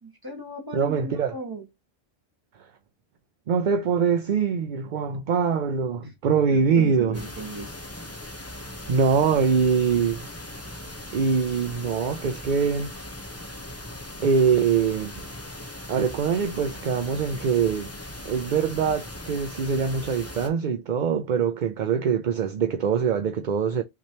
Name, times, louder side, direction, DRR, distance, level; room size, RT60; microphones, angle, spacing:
voice 1, 0.0-1.7 6.0-6.1 6.5-7.7, right 1 dB, 20° right, 1.6 m, -37 dB
voice 2, 0.7-1.3 3.5-7.2 8.9-10.3 11.1-12.9 14.2-15.1 15.9-17.9 18.3-23.8, right 6 dB, 55° right, 0.7 m, -23 dB
sound 1, 7.1-20.5, left 1 dB, 15° left, 0.9 m, -39 dB
5.9 x 3.2 x 2.9 m
omnidirectional pair, 1.1 m